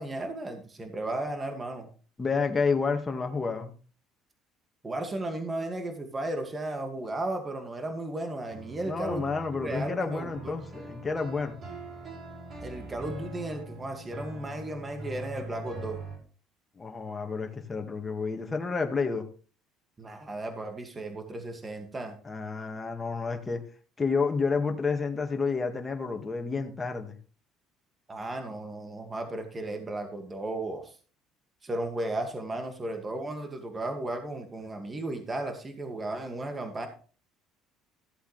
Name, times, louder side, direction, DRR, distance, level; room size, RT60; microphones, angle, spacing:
voice 1, 0.0-1.9 4.8-9.3 9.6-10.6 12.6-16.0 20.0-22.2 28.1-31.0 31.6-36.9, right 2 dB, 25° right, 5 dB, 2.3 m, -35 dB
voice 2, 2.2-3.7 8.9-11.6 16.8-19.2 22.2-23.6 24.0-27.2, left 4 dB, 25° left, 3 dB, 2.1 m, -30 dB
sound 1, 8.5-16.2, right 1 dB, 45° right, 6.5 m, -42 dB
15.0 x 7.9 x 3.4 m, 0.38 s
supercardioid pair, 75°, 0 cm